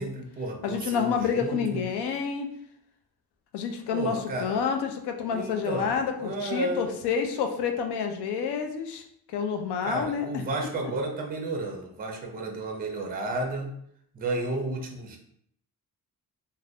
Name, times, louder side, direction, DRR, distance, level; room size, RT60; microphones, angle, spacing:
voice 1, 0.0-1.8 3.9-4.5 5.3-5.9 6.2-6.9 9.8-13.7 14.1-15.2, right 2 dB, 25° right, 3 dB, 0.4 m, -32 dB
voice 2, 0.6-2.5 3.5-9.0 9.3-10.4, left 6 dB, 85° left, 5 dB, 0.6 m, -29 dB
2.4 x 2.2 x 3.4 m, 0.70 s
wide cardioid pair, 155°, 39 cm